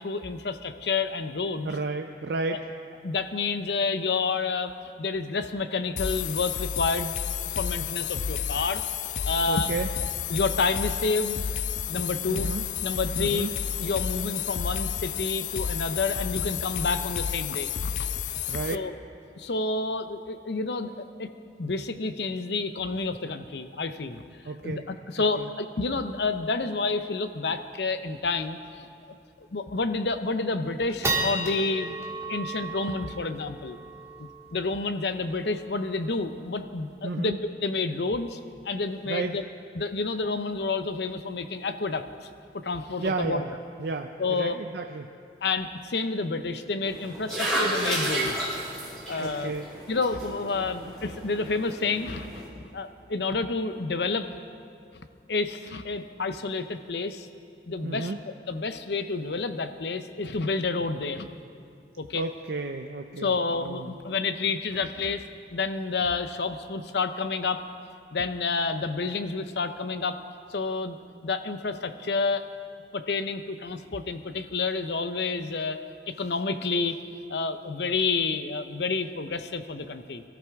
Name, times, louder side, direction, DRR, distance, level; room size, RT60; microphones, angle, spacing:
voice 1, 0.0-1.8 2.5-2.6 3.0-4.7 5.0-7.2 7.5-8.8 9.3-9.7 10.3-11.4 11.9-12.5 12.8-13.5 13.8-17.9 18.7-18.9 19.3-21.3 21.6-24.2 24.6-28.9 29.4-31.9 32.3-33.8 34.5-39.4 39.8-42.0 42.5-43.4 44.2-44.6 45.4-48.5 49.1-49.5 49.9-54.3 55.3-57.3 57.7-58.1 58.5-61.3 62.0-62.2 63.2-65.2 65.5-67.6 68.1-70.2 70.5-71.0 71.2-72.4 72.9-75.8 76.1-77.0 77.3-80.2, left 4 dB, 75° left, 9 dB, 0.7 m, -29 dB
voice 2, 1.6-2.7 9.5-9.9 12.3-12.7 13.2-13.5 18.5-18.8 24.4-24.8 25.4-25.5 37.0-37.4 39.0-39.4 43.0-43.5 43.8-45.1 49.2-49.7 57.8-58.2 62.1-63.3 63.6-63.9, right 3 dB, 65° right, 4 dB, 0.5 m, -32 dB
sound 1, 6.0-18.8, left 8 dB, 45° left, 0.3 m, -31 dB
sound 2, 27.5-27.6 27.9-28.0 28.4-28.6 29.1-29.2 29.8-30.1 30.6-37.1, right 2 dB, 15° right, 1.6 m, -35 dB
sound 3, 46.8-52.5, right 1 dB, 5° left, 4.4 m, -32 dB
23.0 x 13.0 x 3.6 m, 2.4 s
head